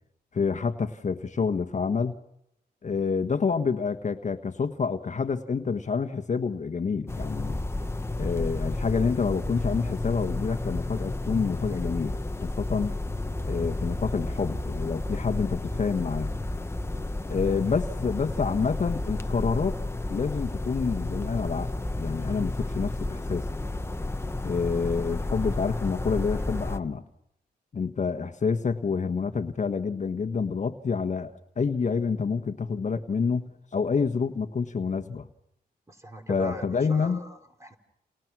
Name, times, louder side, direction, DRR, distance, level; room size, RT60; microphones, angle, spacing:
voice 1, 0.3-2.2 2.8-7.6 8.2-12.9 13.5-16.3 17.3-19.8 20.1-21.7 22.0-23.4 24.4-27.0 27.7-31.3 31.6-35.3 36.3-37.2, left 5 dB, 45° left, 7 dB, 1.5 m, -28 dB
sound 1, 7.1-26.8, left 2 dB, 15° left, 1.1 m, -31 dB
voice 2, 35.9-37.8, right 1 dB, 20° right, 4 dB, 3.9 m, -40 dB
29.5 x 29.5 x 6.2 m, 0.81 s
cardioid pair, 100°, 17 cm